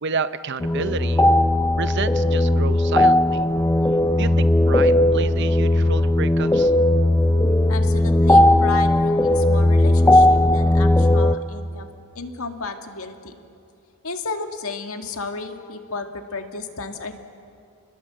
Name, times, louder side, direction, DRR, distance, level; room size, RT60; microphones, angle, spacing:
voice 1, 0.0-1.2 1.8-3.4 4.2-6.7, right 5 dB, 50° right, 13 dB, 0.6 m, -29 dB
sound 1, 0.6-11.3, left 1 dB, 10° left, 0.5 m, -17 dB
voice 2, 7.7-11.9 12.2-13.3 14.0-17.2, left 3 dB, 75° left, 5 dB, 1.9 m, -33 dB
28.5 x 20.5 x 7.7 m, 2.4 s
head